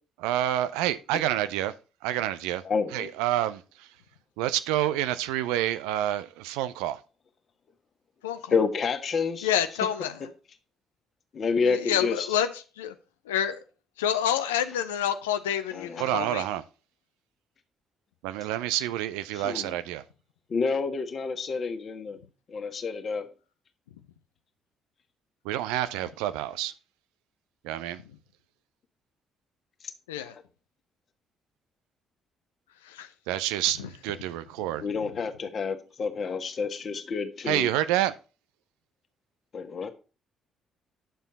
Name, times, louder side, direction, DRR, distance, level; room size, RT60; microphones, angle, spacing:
voice 1, 0.2-1.7 2.0-2.6 2.9-3.6 4.4-7.0 16.0-16.6 18.2-20.0 25.4-26.7 27.6-28.0 33.3-34.8 37.5-38.1, right 13 dB, 70° right, 0.5 m, -28 dB
voice 2, 2.6-3.1 8.5-9.5 11.3-12.3 15.7-16.3 19.3-19.8 20.5-22.2 22.5-23.3 30.2-30.3 34.8-37.7 39.5-39.9, left 5 dB, 45° left, 1.5 m, -29 dB
voice 3, 9.4-10.1 11.6-12.5 12.8-12.9 13.3-13.6 14.0-16.4 30.1-30.3 32.9-33.1, left 9 dB, 75° left, 0.5 m, -28 dB
10.5 x 7.0 x 4.1 m
figure-of-eight pair, 45°, 0 cm